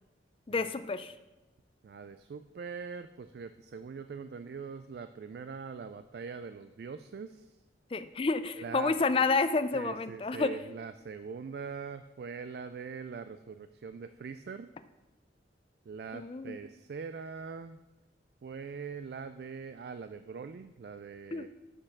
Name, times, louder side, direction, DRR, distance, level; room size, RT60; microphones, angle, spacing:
voice 1, 0.5-1.1 7.9-10.6 16.1-16.6 21.3-21.5, left 3 dB, 30° left, 11 dB, 0.4 m, -29 dB
voice 2, 1.8-7.5 8.6-8.9 9.7-14.7 15.9-17.8 18.4-21.5, right 5 dB, 60° right, 10 dB, 0.3 m, -42 dB
7.7 x 6.5 x 5.9 m, 1.1 s
head